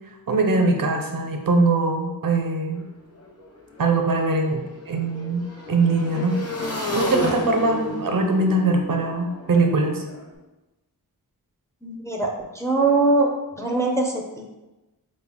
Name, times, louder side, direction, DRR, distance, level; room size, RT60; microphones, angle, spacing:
voice 1, 0.3-2.8 3.8-6.4 6.9-10.0, right 3 dB, 65° right, 3 dB, 0.6 m, -22 dB
Motorcycle / Engine, 2.7-2.8 3.1-10.2, left 1 dB, 40° left, 0.7 m, -32 dB
voice 2, 11.8-13.3 13.6-14.4, right 3 dB, 10° left, 0 dB, 0.4 m, -22 dB
3.9 x 2.2 x 3.5 m, 1.1 s
wide cardioid pair, 85°, 38 cm